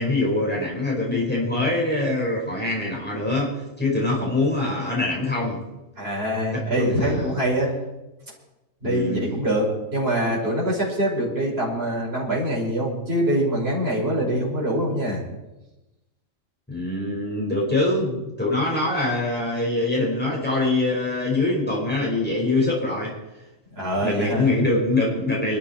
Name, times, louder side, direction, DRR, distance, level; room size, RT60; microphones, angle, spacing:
voice 1, 0.0-5.6 6.5-7.3 8.8-9.2 16.7-23.1 24.0-25.6, left 2 dB, 5° left, -4 dB, 5.1 m, -24 dB
voice 2, 6.0-7.7 8.8-15.2 23.7-24.5, right 1 dB, 50° right, -5 dB, 6.2 m, -24 dB
25.0 x 13.0 x 4.5 m, 1.0 s
omnidirectional pair, 1.4 m